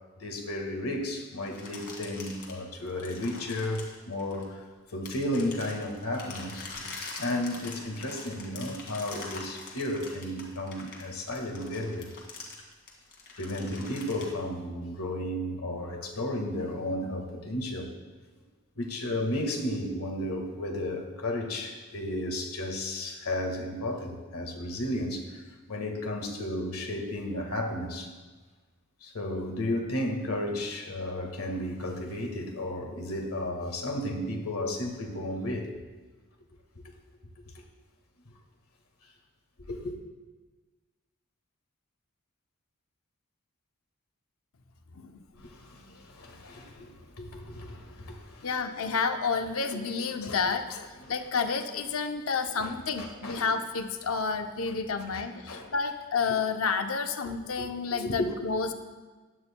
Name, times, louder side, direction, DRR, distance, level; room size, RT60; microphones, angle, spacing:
voice 1, 0.2-6.7 7.2-12.1 13.4-17.9 18.8-28.1 29.0-35.8 36.8-36.9 39.7-40.0 45.3-48.5 50.2-50.4 51.0-51.1 52.6-53.5 55.1-55.7 57.2-58.7, left 1 dB, 85° left, 3 dB, 1.7 m, -33 dB
sound 1, 1.4-4.6 5.1-14.2, left 3 dB, 50° left, 2.1 m, -44 dB
voice 2, 48.4-58.7, left 5 dB, 65° left, 7 dB, 0.6 m, -30 dB
15.5 x 10.5 x 2.2 m, 1.3 s
head